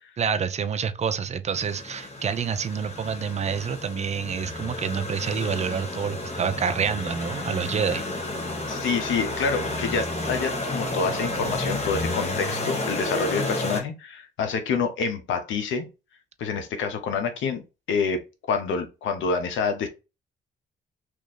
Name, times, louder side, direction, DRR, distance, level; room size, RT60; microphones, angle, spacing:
voice 1, 0.2-8.0, right 6 dB, 35° right, 0.5 m, -27 dB
sound 1, 1.5-13.8, left 2 dB, 35° left, 1.2 m, -31 dB
voice 2, 8.7-15.9 16.4-17.6 17.9-18.2 18.5-19.9, left 5 dB, 80° left, 0.8 m, -27 dB
3.0 x 2.6 x 4.0 m
cardioid pair, 90°, 20 cm